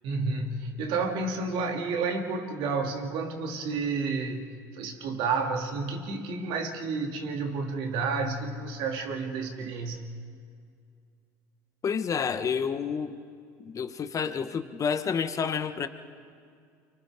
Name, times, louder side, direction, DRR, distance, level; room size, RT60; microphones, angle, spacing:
voice 1, 0.0-4.5 4.7-10.0, right 4 dB, 60° right, 3 dB, 2.8 m, -30 dB
voice 2, 11.8-13.2 13.6-15.9, left 6 dB, 35° left, 10 dB, 1.3 m, -29 dB
29.5 x 24.5 x 3.8 m, 2.3 s
hypercardioid pair, 75°, 10 cm